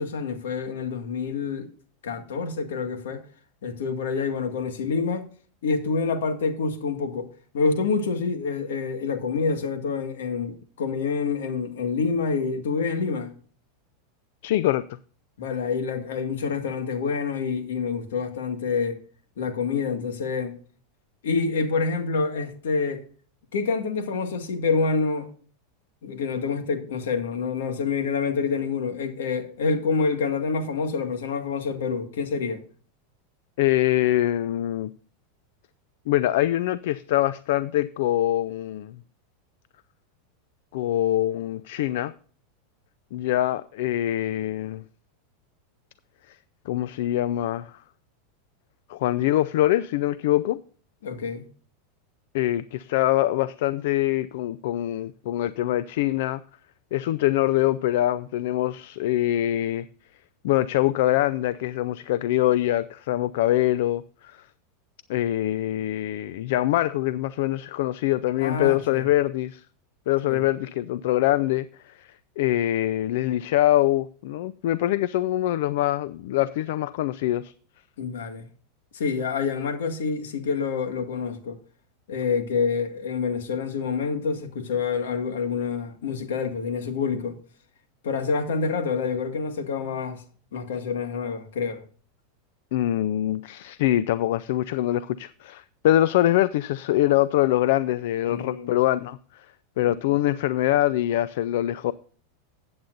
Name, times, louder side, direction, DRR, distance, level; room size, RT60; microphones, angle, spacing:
voice 1, 0.0-1.7 2.0-3.2 3.6-5.3 5.6-13.3 15.4-19.0 19.4-20.5 21.2-23.0 23.5-25.3 26.0-32.6 51.0-51.4 68.4-69.0 70.3-70.4 78.0-78.5 78.9-81.6 82.1-87.4 88.0-90.2 90.5-91.8 98.3-98.7 100.1-100.2, left 5 dB, 85° left, 1.9 m, -27 dB
voice 2, 14.4-14.8 33.6-34.9 36.1-39.0 40.7-42.1 43.1-44.8 46.3-46.4 46.7-47.7 48.9-50.6 52.3-56.4 56.9-59.9 60.4-64.4 65.1-69.6 70.1-77.5 92.7-99.5 99.8-101.9, left 14 dB, 70° left, 0.4 m, -24 dB
14.5 x 8.7 x 2.5 m
supercardioid pair, 130°, 0 cm